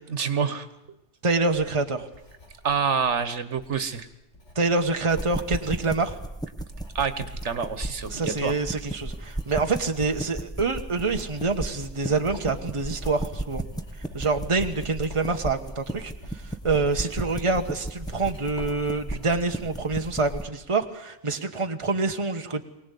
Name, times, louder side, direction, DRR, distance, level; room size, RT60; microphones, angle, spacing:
voice 1, 0.1-0.7 2.6-4.1 6.9-8.5, right 6 dB, 80° right, 11 dB, 1.6 m, -27 dB
voice 2, 1.2-2.1 4.5-6.2 8.1-13.6 14.1-22.6, right 3 dB, 25° right, 5 dB, 1.3 m, -26 dB
Writing, 1.3-20.8, left 1 dB, 80° left, 4.7 m, -49 dB
sound 1, 5.1-20.5, right 1 dB, 5° left, 1.1 m, -35 dB
24.0 x 18.5 x 8.4 m, 0.90 s
omnidirectional pair, 1.2 m